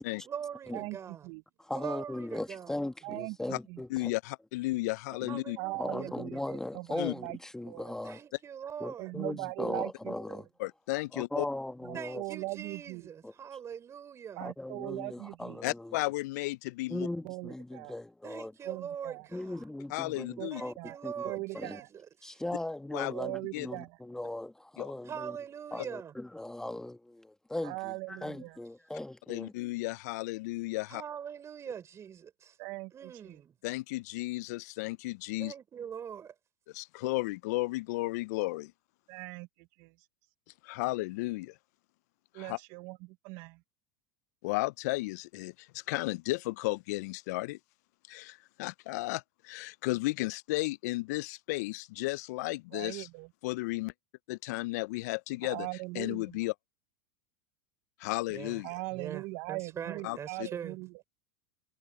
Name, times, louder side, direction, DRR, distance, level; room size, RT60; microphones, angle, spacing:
voice 1, 0.2-1.3 1.7-2.8 5.3-6.1 8.0-9.1 11.9-14.5 18.2-19.7 20.5-22.4 25.0-26.1 30.9-32.6 32.9-33.6 35.4-36.3 58.3-58.6 58.9-60.8, right 8 dB, 30° right, 5.6 m, -42 dB
voice 2, 1.6-4.1 5.2-5.4 5.7-8.2 8.8-10.5 11.1-12.2 13.2-13.3 14.4-15.9 16.9-18.5 19.3-21.2 21.5-21.8 22.2-25.4 25.7-29.5, left 1 dB, 5° left, 1.4 m, -38 dB
voice 3, 3.0-3.4 3.7-3.8 5.6-7.4 7.6-7.9 9.0-10.4 11.9-13.0 14.4-15.6 17.2-17.9 18.7-19.3 20.4-20.5 20.8-21.0 21.2-21.9 23.1-23.9 27.6-28.6 32.6-33.4 39.1-39.5 39.8-39.9 42.3-43.6 52.7-53.3 55.5-56.2 58.6-60.9, right 25 dB, 55° right, 0.8 m, -40 dB
voice 4, 3.9-5.6 7.0-7.1 10.6-11.5 15.6-17.1 19.9-20.6 22.9-23.1 23.5-23.7 24.8-24.9 29.3-31.0 33.6-35.5 36.7-38.7 40.6-41.6 42.3-42.6 44.4-47.6 48.1-53.1 53.4-53.9 54.3-55.7 55.9-56.5 58.0-58.7 60.0-60.5, left 21 dB, 65° left, 0.5 m, -34 dB
hypercardioid pair, 100°, 10 cm